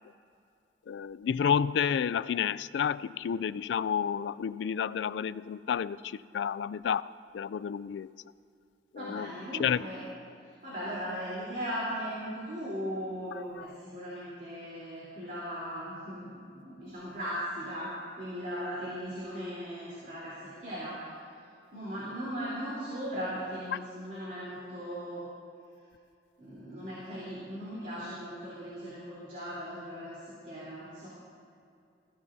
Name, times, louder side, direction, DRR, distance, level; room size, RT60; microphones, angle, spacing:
voice 1, 0.9-8.1 8.9-9.3 9.6-9.9, left 7 dB, 85° left, 18 dB, 0.3 m, -30 dB
voice 2, 9.0-10.0 10.6-17.9 18.2-20.3 20.6-20.9 21.7-25.3 26.4-31.1, equal, 50° right, -9 dB, 3.5 m, -38 dB
21.0 x 15.5 x 2.7 m, 2.4 s
head